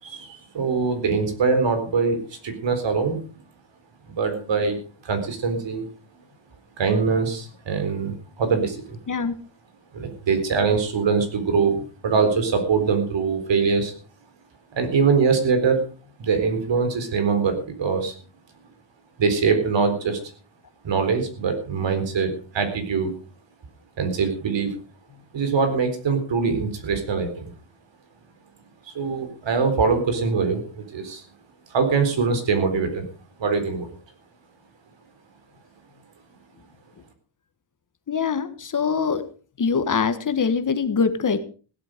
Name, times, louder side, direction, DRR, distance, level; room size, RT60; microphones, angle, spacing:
voice 1, 0.0-3.2 4.1-4.8 5.0-5.9 6.8-9.0 9.9-13.9 14.7-15.8 16.2-18.1 19.2-20.2 20.8-23.1 24.0-24.7 25.3-27.5 28.9-31.2 31.7-33.1 33.4-33.9, right 5 dB, 65° right, 7 dB, 4.2 m, -23 dB
voice 2, 38.1-39.2 39.6-41.4, left 5 dB, 40° left, 10 dB, 1.4 m, -23 dB
16.5 x 12.0 x 5.1 m, 0.39 s
wide cardioid pair, 175°, 47 cm